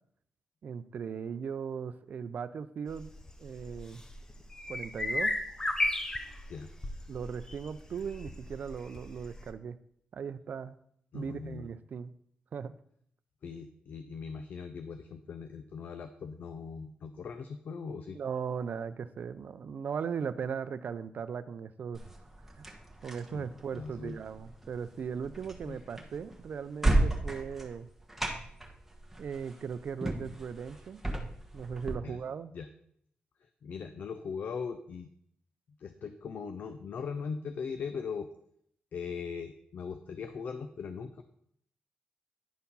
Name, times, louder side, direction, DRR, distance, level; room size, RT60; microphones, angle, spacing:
voice 1, 0.6-3.1 3.4-4.0 4.7-5.3 7.1-9.8 10.1-10.8 11.1-12.1 12.5-12.7 18.1-22.1 22.6-22.7 23.0-27.9 29.2-31.0 31.5-32.5, right 6 dB, 60° right, 12 dB, 0.5 m, -38 dB
sound 1, 2.9-9.5, left 2 dB, 20° left, 0.8 m, -36 dB
voice 2, 11.1-11.7 13.4-18.2 23.3-24.2 25.6-25.8 32.0-32.2 32.5-32.7 33.6-35.1 35.8-38.3 38.9-41.2, left 5 dB, 65° left, 9 dB, 0.6 m, -40 dB
sound 2, 21.9-31.9, right 2 dB, 5° right, 1.4 m, -35 dB
10.0 x 4.6 x 5.4 m, 0.68 s
cardioid pair, 100°, 3 cm